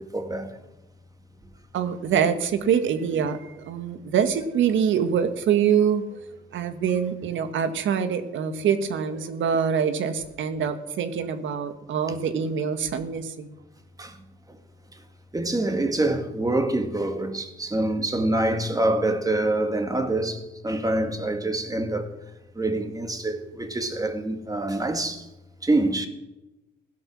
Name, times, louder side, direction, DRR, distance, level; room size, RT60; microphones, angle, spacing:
voice 1, 0.1-0.5 12.1-12.2 14.0-14.1 15.3-22.1 22.6-25.2 25.6-26.1, right 2 dB, 20° right, 2.1 m, -25 dB
voice 2, 1.7-6.2 6.5-13.5, right 7 dB, 75° right, 1.6 m, -25 dB
16.5 x 11.5 x 6.3 m
cardioid pair, 90°, 20 cm